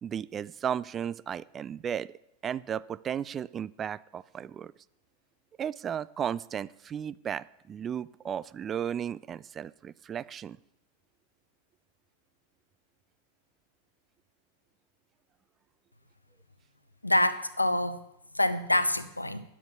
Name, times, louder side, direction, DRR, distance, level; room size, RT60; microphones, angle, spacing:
voice 1, 0.0-2.1 2.4-4.7 5.6-10.6, right 8 dB, 25° right, 0.3 m, -34 dB
voice 2, 17.0-18.0 18.3-19.4, left 1 dB, 85° left, 0.8 m, -26 dB
10.5 x 7.5 x 8.0 m
figure-of-eight pair, 90°, 0 cm